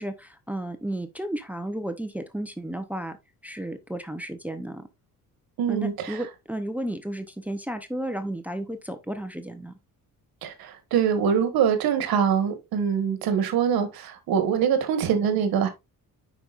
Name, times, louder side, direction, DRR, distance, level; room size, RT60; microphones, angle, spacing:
voice 1, 0.0-3.1 3.4-4.8 5.7-9.8, right 1 dB, 5° right, 0.7 m, -33 dB
voice 2, 5.6-6.2 10.4-15.7, right 7 dB, 80° right, 1.6 m, -24 dB
9.5 x 5.2 x 2.5 m
cardioid pair, 150°, 35 cm